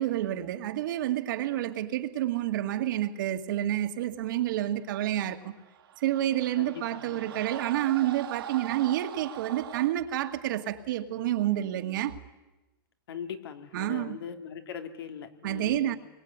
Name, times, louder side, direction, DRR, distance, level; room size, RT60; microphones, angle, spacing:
voice 1, 0.0-5.5 6.0-12.2 13.7-14.2 15.4-16.0, right 13 dB, 60° right, 2.1 m, -29 dB
sound 1, 5.5-9.9, right 10 dB, 85° right, 3.1 m, -42 dB
voice 2, 6.6-7.3 13.1-16.0, left 7 dB, 80° left, 2.9 m, -40 dB
26.0 x 22.5 x 9.7 m
supercardioid pair, 165°, 12 cm